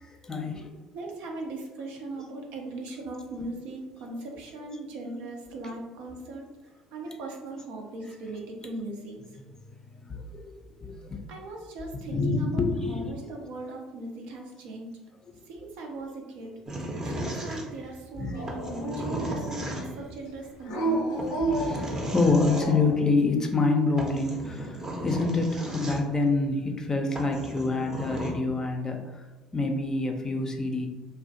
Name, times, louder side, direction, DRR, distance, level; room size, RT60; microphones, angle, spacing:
voice 1, 0.2-0.7 10.1-10.2 10.8-11.2 12.1-13.1 18.2-18.4 19.8-19.9 21.6-24.8 25.0-29.0 29.5-30.9, left 3 dB, 25° left, 3 dB, 0.4 m, -26 dB
voice 2, 0.9-6.5 6.9-9.2 11.3-14.9 15.5-16.5 16.9-21.0 29.3-29.4, right 2 dB, 70° right, 1 dB, 0.5 m, -39 dB
sound 1, 16.7-18.0 18.5-20.1 21.2-22.7 23.6-23.7 24.0-26.3 26.8-26.9 27.1-28.3, right 1 dB, 25° right, 0.6 m, -35 dB
Dog, 18.3-19.8 20.6-23.0, right 2 dB, 85° left, 0.5 m, -31 dB
2.4 x 2.0 x 2.6 m, 1.1 s
hypercardioid pair, 65°, 2 cm